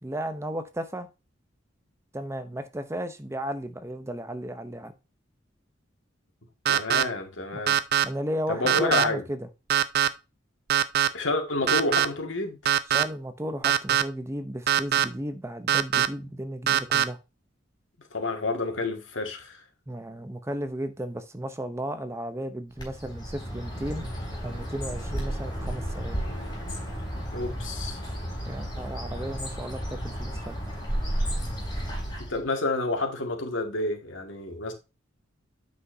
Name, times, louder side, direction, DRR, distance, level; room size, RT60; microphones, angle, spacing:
voice 1, 0.0-1.1 2.1-4.9 7.5-7.6 8.0-9.4 12.9-17.2 19.9-24.1 24.4-26.2 28.4-30.6, right 1 dB, 15° right, 0.7 m, -34 dB
voice 2, 6.7-7.8 8.5-9.2 11.1-12.6 18.1-19.6 27.3-28.0 32.2-34.7, left 2 dB, 80° left, 2.0 m, -29 dB
sound 1, 6.7-7.0 7.7-8.0 8.7-9.0 9.7-10.1 10.7-11.1 11.7-12.1 12.7-13.0 13.6-14.0 14.7-15.0 15.7-16.1 16.7-17.0, right 10 dB, 55° right, 0.5 m, -21 dB
Bird, 22.8-32.5, equal, 20° left, 4.1 m, -33 dB
8.4 x 6.0 x 2.7 m
head